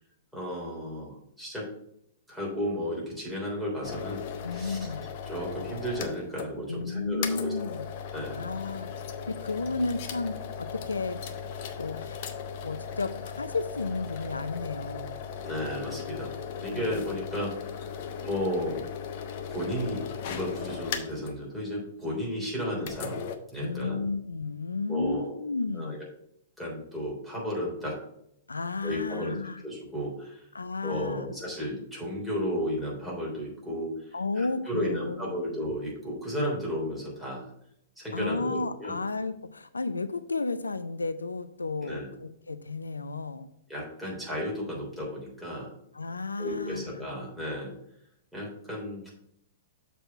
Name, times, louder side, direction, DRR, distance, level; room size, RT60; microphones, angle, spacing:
voice 1, 0.3-1.7 2.3-4.2 4.5-4.8 5.2-7.5 8.1-8.4 15.4-18.8 19.5-24.0 24.9-25.3 25.7-26.0 26.6-28.0 28.8-29.4 29.6-30.5 30.8-37.5 38.0-39.0 41.8-42.1 43.7-45.7 46.4-47.7 48.3-49.1, equal, 5° right, -5 dB, 3.4 m, -34 dB
sound 1, 3.8-6.5 6.8-6.9 7.2-21.4 22.8-23.4, left 7 dB, 45° left, 0.8 m, -37 dB
voice 2, 4.4-5.1 6.7-7.8 8.3-9.0 9.3-11.2 11.8-12.2 12.6-15.2 16.7-16.9 23.6-26.0 28.5-29.6 30.5-31.3 34.1-35.4 38.1-43.5 45.9-47.1, left 3 dB, 80° left, 11 dB, 0.4 m, -33 dB
7.0 x 4.2 x 5.7 m, 0.74 s
figure-of-eight pair, 110°, 0 cm